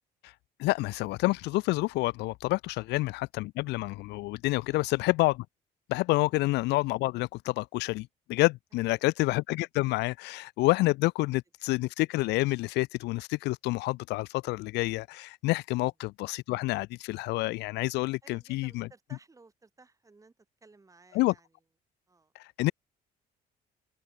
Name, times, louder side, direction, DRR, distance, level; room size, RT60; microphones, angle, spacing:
voice 1, 0.6-5.4 5.9-18.9 21.1-21.3 22.3-22.7, left 20 dB, 85° left, 0.9 m, -28 dB
voice 2, 8.7-9.1 18.2-21.5 22.1-22.3, right 3 dB, 20° right, 6.6 m, -58 dB
open air
cardioid pair, 110°, 17 cm